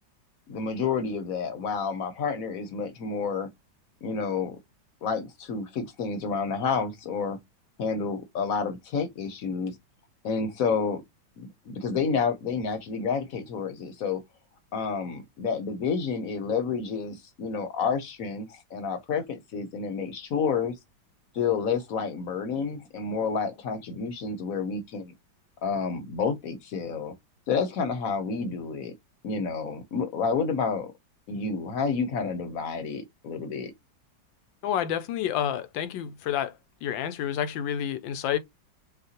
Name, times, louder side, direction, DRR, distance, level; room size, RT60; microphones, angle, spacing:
voice 1, 0.5-3.5 4.0-4.6 5.0-7.4 7.8-9.7 10.2-11.0 11.4-14.2 14.7-20.7 21.3-25.1 25.6-27.1 27.5-28.9 29.2-30.9 31.3-33.7, left 5 dB, 55° left, 1.1 m, -29 dB
voice 2, 34.6-36.5 36.8-38.4, left 10 dB, 80° left, 1.4 m, -29 dB
6.5 x 2.3 x 2.8 m
omnidirectional pair, 2.1 m